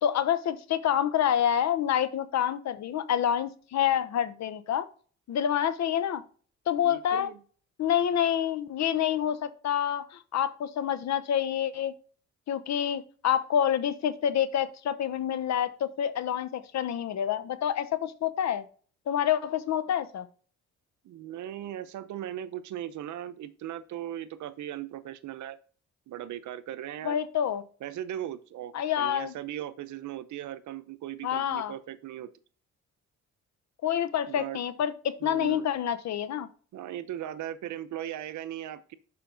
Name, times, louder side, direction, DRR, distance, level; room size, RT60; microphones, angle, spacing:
voice 1, 0.0-4.9 5.3-6.2 6.7-7.3 7.8-11.9 12.5-18.6 19.1-20.3 27.0-27.6 28.7-29.3 31.2-31.7 33.8-36.5, left 9 dB, 65° left, 13 dB, 0.9 m, -27 dB
voice 2, 6.8-7.4 21.0-25.6 26.1-27.2 27.8-32.3 34.3-34.6 35.2-35.7 36.7-38.9, right 12 dB, 70° right, 14 dB, 0.8 m, -38 dB
6.9 x 5.2 x 3.9 m, 0.41 s
cardioid pair, 90°, 30 cm